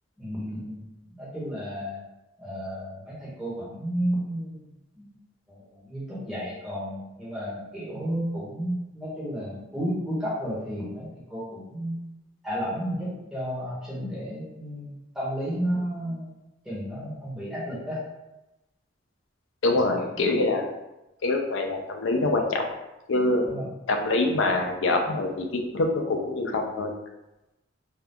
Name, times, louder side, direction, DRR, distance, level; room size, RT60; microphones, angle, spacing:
voice 1, 0.2-2.0 2.4-4.7 4.9-5.1 5.5-12.0 12.4-16.3 16.6-18.0 20.1-20.2 23.5-23.7, equal, 5° right, -9 dB, 1.1 m, -32 dB
voice 2, 19.6-20.7 21.2-22.7 23.1-23.5 23.9-26.9, left 2 dB, 80° left, 3 dB, 0.5 m, -25 dB
2.7 x 2.3 x 3.5 m, 0.96 s
head